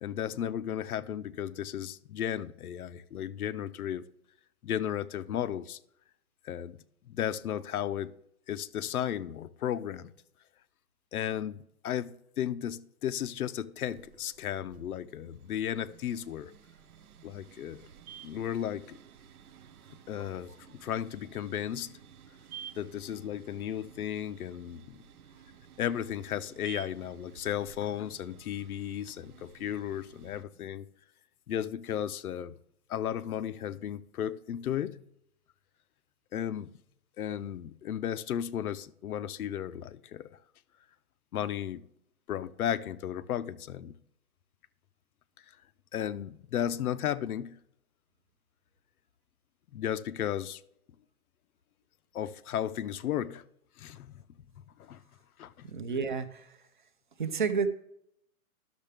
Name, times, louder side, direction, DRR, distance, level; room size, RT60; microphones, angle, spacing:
voice 1, 0.0-4.0 4.6-5.8 6.4-6.8 7.1-8.1 8.5-10.1 11.1-16.5 17.2-17.9 18.2-19.0 19.9-22.0 22.7-25.0 25.8-30.8 31.5-32.6 32.9-35.0 36.3-36.7 37.2-40.4 41.3-41.8 42.3-44.0 45.9-47.6 49.7-50.6 52.1-53.4 53.8-54.1 54.7-55.0 55.4-55.7, left 10 dB, 85° left, 0.7 m, -34 dB
sound 1, 13.9-30.4, right 9 dB, 85° right, 1.0 m, -53 dB
voice 2, 55.7-56.6 57.2-57.7, right 5 dB, 35° right, 0.6 m, -30 dB
12.0 x 6.6 x 3.4 m
hypercardioid pair, 170°, 43 cm